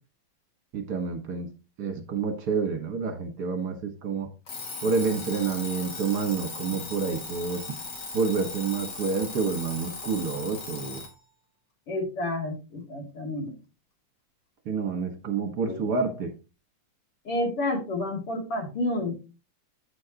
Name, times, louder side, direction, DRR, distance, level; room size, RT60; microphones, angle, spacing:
voice 1, 0.7-1.5 1.8-4.3 4.8-7.6 8.1-11.0 14.7-16.3, right 5 dB, 50° right, 5 dB, 2.0 m, -28 dB
Alarm, 4.5-11.2, left 4 dB, 50° left, 2.5 m, -38 dB
voice 2, 11.9-13.5 15.7-15.8 17.3-19.1, left 1 dB, 85° left, 1 dB, 3.6 m, -30 dB
9.4 x 7.6 x 3.0 m, 0.30 s
omnidirectional pair, 2.4 m